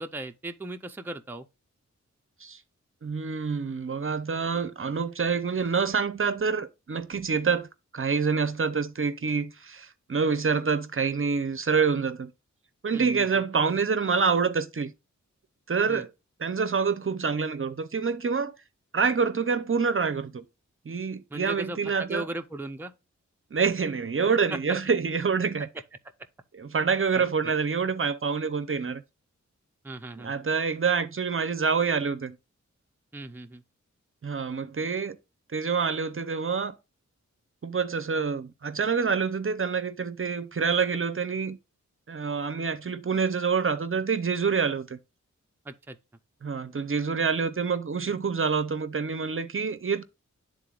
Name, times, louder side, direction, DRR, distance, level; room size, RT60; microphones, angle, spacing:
voice 1, 0.0-1.5 12.9-13.3 15.9-16.0 21.3-22.9 24.5-24.6 27.1-27.2 29.8-30.3 33.1-33.6 45.7-46.0, right 2 dB, 5° right, 0.5 m, -37 dB
voice 2, 3.0-7.7 7.9-12.3 12.8-14.9 15.7-16.1 16.4-18.5 18.9-20.4 20.9-22.3 23.5-25.7 26.5-29.0 30.2-32.4 34.2-35.2 35.5-36.7 37.6-41.6 42.1-45.0 46.4-50.0, right 5 dB, 45° right, 0.6 m, -27 dB
11.0 x 3.8 x 2.4 m
wide cardioid pair, 80°, 30 cm